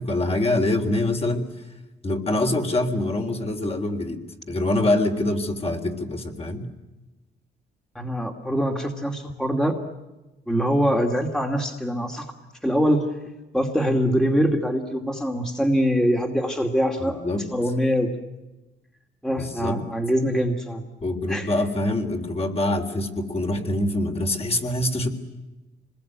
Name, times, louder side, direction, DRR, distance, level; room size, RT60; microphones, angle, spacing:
voice 1, 0.0-1.5 2.0-4.2 4.5-6.7 17.0-17.5 19.4-19.8 21.0-25.1, left 1 dB, 30° left, 4 dB, 3.8 m, -25 dB
voice 2, 7.9-9.8 10.5-12.3 12.6-13.1 13.5-17.2 17.5-18.1 19.2-20.8 21.3-21.5, equal, 5° left, 3 dB, 2.6 m, -23 dB
26.5 x 21.0 x 9.5 m, 1.1 s
cardioid pair, 90°, 20 cm